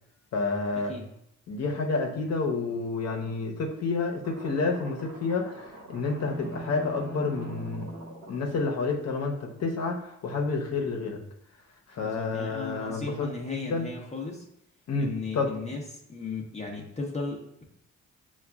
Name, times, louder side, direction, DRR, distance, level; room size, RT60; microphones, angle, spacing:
voice 1, 0.3-0.9 1.5-7.9 8.3-11.2 11.9-13.9 14.9-15.6, left 4 dB, 55° left, 2 dB, 0.8 m, -29 dB
sound 1, 4.2-10.0, right 1 dB, 80° right, 0.9 m, -47 dB
sound 2, 6.0-8.3, right 2 dB, 35° right, 0.6 m, -40 dB
voice 2, 12.0-14.5 15.0-15.8 16.1-17.6, left 3 dB, 20° left, -1 dB, 0.7 m, -36 dB
6.9 x 2.3 x 2.3 m, 0.75 s
cardioid pair, 90°, 30 cm